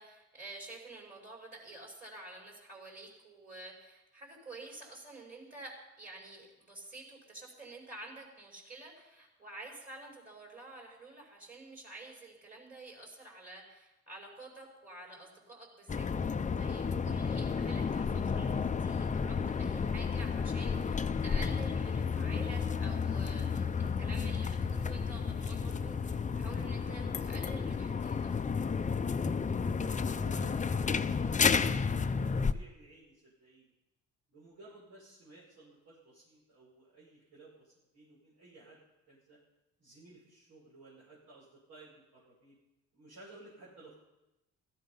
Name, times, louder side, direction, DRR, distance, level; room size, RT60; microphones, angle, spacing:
voice 1, 0.0-28.3, right 2 dB, 30° right, -1 dB, 5.4 m, -49 dB
sound 1, 15.9-32.5, left 5 dB, 25° left, 0.6 m, -32 dB
voice 2, 30.1-33.7 34.3-38.8 39.1-39.4 39.8-42.6 42.9-43.9, right 2 dB, 80° right, -7 dB, 5.6 m, -56 dB
16.0 x 14.0 x 5.6 m, 0.96 s
cardioid pair, 90°, 30 cm